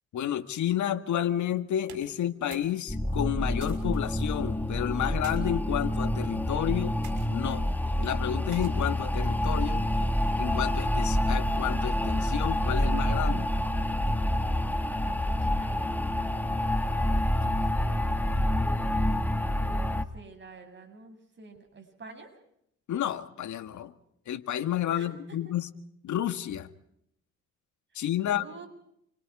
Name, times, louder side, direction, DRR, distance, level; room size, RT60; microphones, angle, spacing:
voice 1, 0.1-7.0 7.3-7.7 8.0-9.8 10.4-13.5 22.9-23.9 24.3-25.7 26.0-26.7 27.9-28.4, left 11 dB, 70° left, 9 dB, 2.0 m, -30 dB
sound 1, 1.8-2.8 3.0-4.0 4.9-5.4 6.2-6.4 7.0-7.3 8.5-9.0, right 8 dB, 75° right, 6.1 m, -49 dB
sound 2, 2.9-20.1, left 1 dB, 5° left, 1.9 m, -27 dB
voice 2, 14.9-18.3 19.4-22.4 24.9-25.6 28.1-28.7, right 3 dB, 40° right, 5 dB, 7.7 m, -50 dB
29.5 x 25.0 x 4.9 m, 0.73 s
cardioid pair, 90°, 30 cm